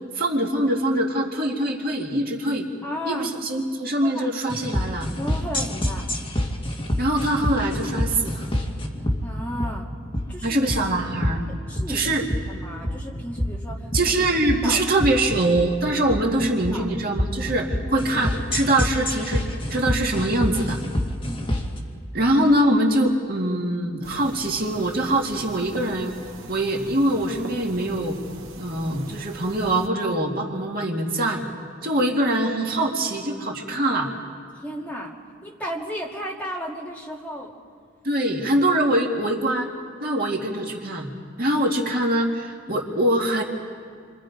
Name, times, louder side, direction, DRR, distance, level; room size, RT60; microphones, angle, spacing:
voice 1, 0.1-2.7 3.1-5.1 7.0-8.5 10.4-11.4 11.9-12.3 13.9-19.4 19.7-20.8 22.1-26.2 26.5-28.2 28.6-31.4 31.8-34.1 38.0-39.7 40.0-41.1 41.4-43.4, right 1 dB, 45° right, 0 dB, 2.2 m, -23 dB
voice 2, 2.8-3.3 4.0-4.3 5.2-6.1 9.2-9.9 10.3-10.6 11.7-14.2 14.6-14.9 16.7-16.9 17.8-18.1 21.2-21.6 34.5-35.1 35.4-37.5, equal, 10° left, -3 dB, 2.4 m, -34 dB
sound 1, 4.5-21.8, left 1 dB, 25° left, 2.2 m, -27 dB
sound 2, 24.0-29.9, right 2 dB, 80° right, 1.9 m, -41 dB
28.5 x 25.0 x 5.2 m, 2.1 s
head